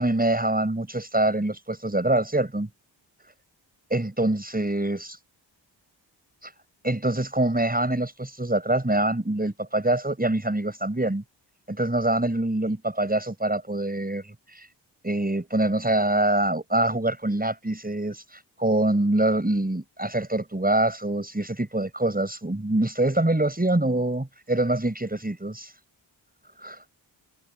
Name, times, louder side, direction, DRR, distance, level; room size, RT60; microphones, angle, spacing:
voice 1, 0.0-2.7 3.9-5.2 6.4-6.5 6.8-11.2 11.7-14.7 15.0-25.7 26.6-26.8, right 1 dB, 20° right, 6.9 m, -25 dB
supercardioid pair, 40°, 46 cm